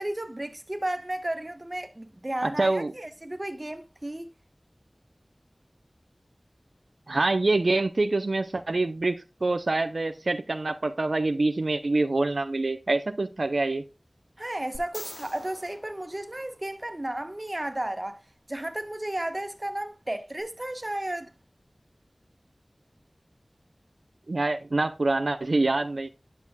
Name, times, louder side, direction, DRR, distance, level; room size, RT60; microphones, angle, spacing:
voice 1, 0.0-4.3 14.4-18.2 18.5-21.3, right 1 dB, 35° right, 1.1 m, -33 dB
voice 2, 2.4-2.9 7.1-13.8 24.3-26.1, right 2 dB, 85° right, 0.5 m, -26 dB
sound 1, 14.7-17.0 20.4-20.5, left 1 dB, 70° left, 2.2 m, -45 dB
10.5 x 6.7 x 2.2 m
wide cardioid pair, 50°, 0 cm